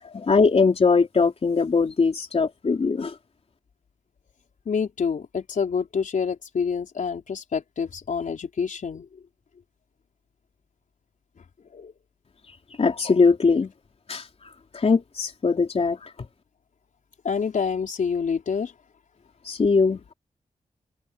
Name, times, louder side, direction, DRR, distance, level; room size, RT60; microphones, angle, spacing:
voice 1, 0.1-3.2 12.8-13.7 14.1-16.1 19.4-20.1, left 4 dB, 50° left, 3.5 m, -21 dB
voice 2, 4.7-9.1 11.7-11.9 17.2-18.7, left 6 dB, 75° left, 4.4 m, -27 dB
wide cardioid pair, 125°, 13 cm